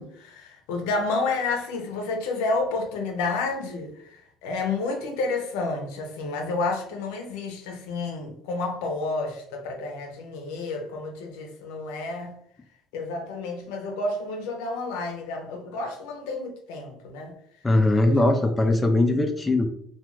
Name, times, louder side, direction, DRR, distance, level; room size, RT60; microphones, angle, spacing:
voice 1, 0.0-12.3 12.9-17.4 18.0-18.2, left 3 dB, 90° left, 0.6 m, -30 dB
voice 2, 17.6-19.7, left 2 dB, 20° left, 0.3 m, -20 dB
2.3 x 2.3 x 3.0 m
supercardioid pair, 100°, 0 cm